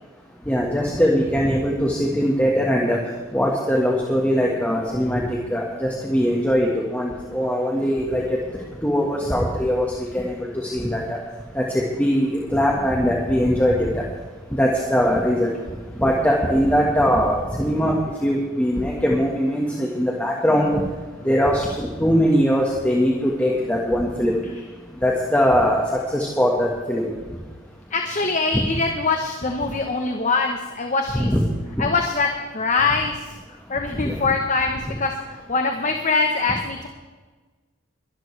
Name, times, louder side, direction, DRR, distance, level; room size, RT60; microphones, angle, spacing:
voice 1, 0.5-3.0 3.3-5.2 5.5-8.4 8.8-11.0 11.5-14.0 14.6-15.5 16.0-20.8 21.2-24.3 25.0-27.1 31.1-31.4 31.8-31.9 34.0-34.2, equal, 10° left, -3 dB, 1.5 m, -21 dB
voice 2, 27.9-31.3 31.8-32.3 32.5-33.2 33.7-35.1 35.5-36.9, left 4 dB, 35° left, 4 dB, 1.0 m, -23 dB
22.5 x 12.0 x 3.3 m, 1.3 s
head